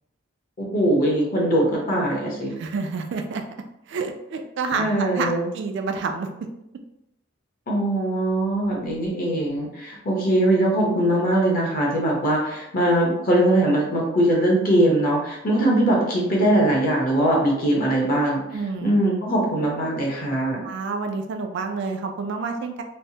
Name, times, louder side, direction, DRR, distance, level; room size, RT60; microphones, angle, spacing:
voice 1, 0.6-2.5 4.7-5.4 7.7-18.4 18.8-20.6, right 1 dB, 45° left, -2 dB, 0.8 m, -21 dB
voice 2, 2.5-3.4 3.9-6.5 18.5-18.9 20.6-22.8, right 4 dB, 55° right, 4 dB, 0.3 m, -29 dB
3.2 x 2.1 x 2.7 m, 0.83 s
head